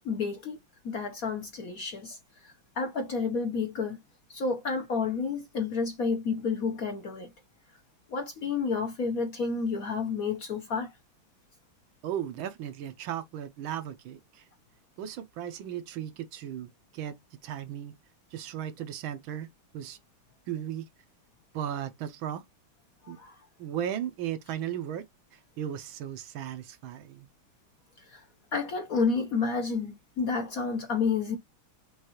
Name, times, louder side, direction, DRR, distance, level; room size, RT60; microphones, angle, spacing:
voice 1, 0.0-0.6 0.8-4.0 4.3-7.3 8.1-10.9 23.1-23.3 28.1-28.2 28.5-31.4, left 5 dB, 55° left, 1.1 m, -30 dB
voice 2, 12.0-14.5 15.0-17.9 18.3-20.0 20.5-20.9 21.5-22.4 23.1-23.2 23.6-27.3, right 10 dB, 75° right, 1.5 m, -36 dB
6.4 x 2.5 x 2.9 m
omnidirectional pair, 2.3 m